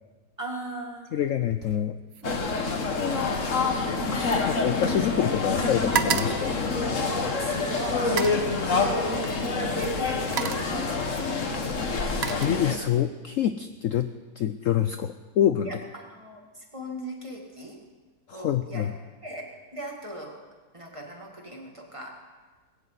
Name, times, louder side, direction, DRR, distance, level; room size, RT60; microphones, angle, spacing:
voice 1, 0.4-1.3 7.1-8.3 8.6-11.7 15.6-17.8 18.3-18.9 19.2-19.4 19.7-20.4 20.7-22.2, right 1 dB, 20° right, 0 dB, 2.5 m, -39 dB
voice 2, 1.1-2.0 4.5-6.5 12.2-14.1 14.4-15.7 18.3-18.9, left 10 dB, 65° left, 10 dB, 0.8 m, -26 dB
sound 1, 1.4-1.8 2.1-5.2 5.5-7.4 8.0-8.5 9.5-9.7 10.1-10.8 11.7-13.1 13.4-13.8, right 7 dB, 55° right, 0.7 m, -33 dB
sound 2, 2.2-12.8, left 3 dB, 50° left, 1.7 m, -27 dB
20.5 x 17.0 x 4.1 m, 1.3 s
omnidirectional pair, 1.8 m